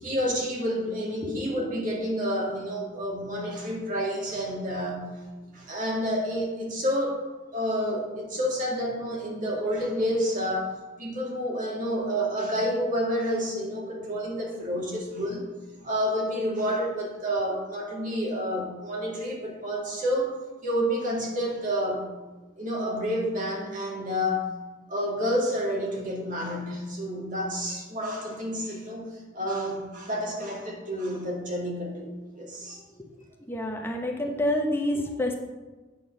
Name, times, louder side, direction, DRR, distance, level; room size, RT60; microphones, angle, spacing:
voice 1, 0.0-5.1 5.5-7.2 7.5-10.7 11.0-15.4 15.8-22.1 22.6-24.5 24.9-32.8, equal, 45° right, -2 dB, 1.8 m, -29 dB
voice 2, 33.5-35.4, left 1 dB, 10° left, 0 dB, 0.9 m, -27 dB
8.7 x 3.9 x 6.3 m, 1.2 s
head